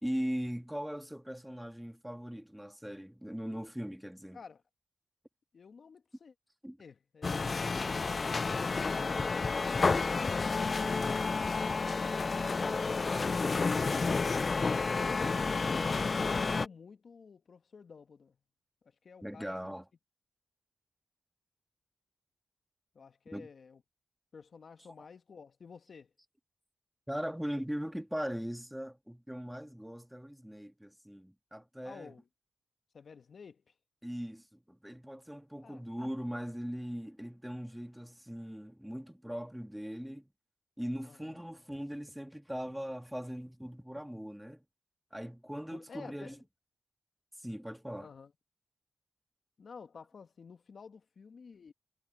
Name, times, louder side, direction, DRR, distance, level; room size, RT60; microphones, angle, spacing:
voice 1, 0.0-4.4 6.6-6.8 19.2-19.9 23.3-23.5 27.1-32.1 34.0-40.3 40.8-44.6 45.1-46.4 47.4-48.1, equal, 5° right, 2.1 m, -40 dB
voice 2, 5.5-6.3 6.8-7.6 8.2-9.3 14.6-18.4 19.0-19.7 22.9-23.8 24.3-26.1 31.8-32.3 32.9-33.6 35.6-35.8 41.0-41.4 45.7-46.4 48.0-48.3 49.6-51.7, left 5 dB, 65° left, 1.5 m, -51 dB
sound 1, 7.2-16.7, left 4 dB, 45° left, 0.5 m, -30 dB
cardioid pair, 55°, 0 cm